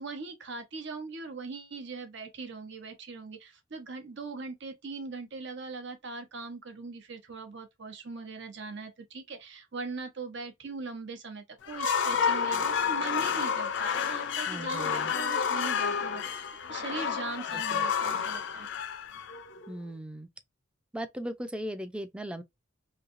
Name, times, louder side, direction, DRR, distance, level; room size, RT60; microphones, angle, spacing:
voice 1, 0.0-18.7, right 4 dB, 65° right, 0.9 m, -40 dB
sound 1, 11.6-19.7, left 7 dB, 60° left, 0.5 m, -30 dB
voice 2, 14.5-15.1 17.5-18.1 19.7-20.3 20.9-22.4, equal, 5° right, 0.4 m, -38 dB
3.1 x 2.7 x 2.5 m
head